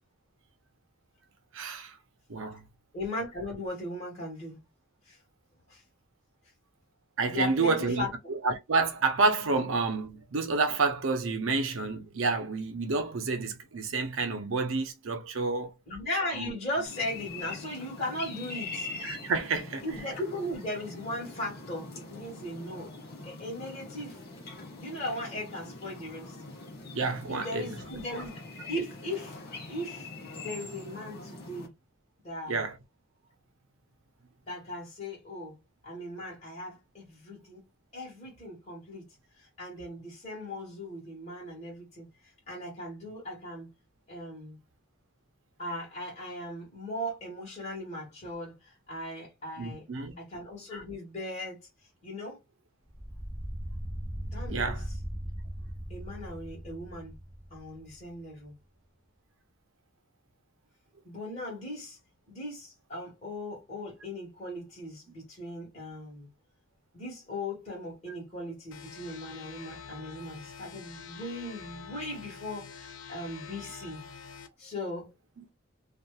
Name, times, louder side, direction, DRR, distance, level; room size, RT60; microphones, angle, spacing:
voice 1, 1.5-1.9 2.3-2.6 7.2-15.7 16.4-16.5 19.0-19.8 26.9-27.7 32.5-32.7 49.6-50.1 54.5-54.8 75.4-75.5, right 4 dB, 70° right, 0.6 m, -29 dB
voice 2, 2.9-4.6 5.1-5.2 5.7-5.8 7.3-8.1 15.9-18.9 19.8-22.9 23.2-24.2 24.8-26.3 27.3-28.4 28.7-29.4 29.7-30.1 30.4-31.7 32.2-32.7 34.5-37.6 37.9-39.0 39.6-42.1 42.5-43.7 44.1-44.6 45.6-49.9 50.2-51.6 52.0-52.4 54.2-54.8 55.9-57.2 57.5-58.5 61.0-62.0 62.3-66.3 66.9-74.0 74.6-75.1, left 1 dB, 30° left, 1.4 m, -38 dB
sound 1, 16.9-31.7, left 3 dB, 50° left, 0.9 m, -43 dB
sound 2, 52.9-58.1, equal, 10° left, 1.0 m, -39 dB
sound 3, 68.7-74.5, left 6 dB, 65° left, 0.4 m, -46 dB
2.7 x 2.4 x 2.3 m
head